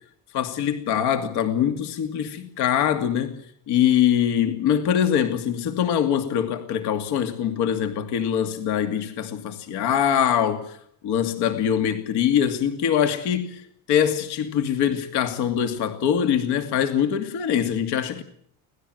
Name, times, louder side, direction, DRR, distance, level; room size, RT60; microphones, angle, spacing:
voice 1, 0.3-3.4 3.7-10.8 11.0-13.6 13.9-18.2, left 9 dB, 70° left, 2.6 m, -23 dB
25.5 x 18.5 x 7.9 m
cardioid pair, 155°, 41 cm